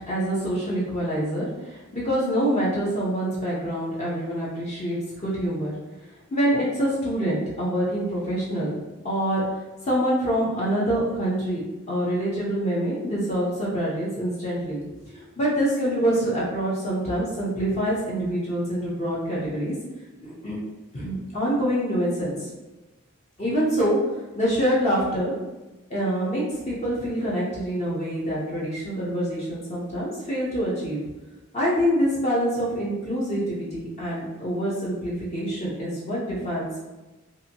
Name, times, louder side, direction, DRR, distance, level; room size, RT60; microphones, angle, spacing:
voice 1, 0.1-5.7 6.3-8.8 9.0-9.5 9.8-11.6 11.9-14.9 15.1-19.7 20.2-20.6 20.9-22.5 23.4-24.0 24.3-25.3 25.9-31.0 31.5-36.8, equal, 35° left, -6 dB, 0.6 m, -26 dB
2.7 x 2.5 x 2.7 m, 1.1 s
head